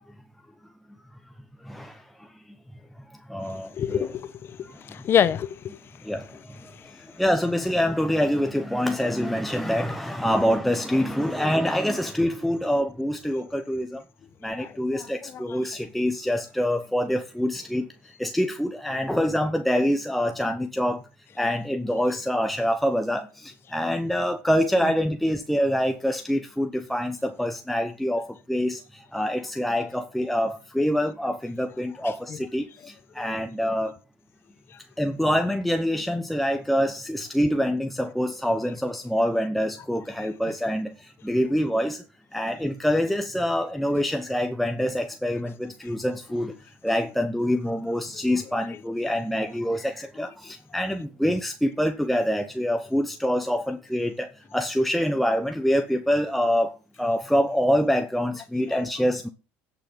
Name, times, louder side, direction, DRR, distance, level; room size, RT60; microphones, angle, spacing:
voice 1, 1.6-2.3 3.3-4.1 4.6-4.7 6.0-14.0 14.4-17.9 18.2-21.0 21.4-34.0 35.0-42.0 42.3-46.5 46.8-56.7 57.0-59.3, equal, ahead, 0.9 m, -25 dB
voice 2, 3.7-5.6 14.6-15.6 32.3-32.4 58.7-58.8, left 9 dB, 45° left, 0.9 m, -27 dB
16.5 x 6.0 x 3.8 m
supercardioid pair, 85°, 6 cm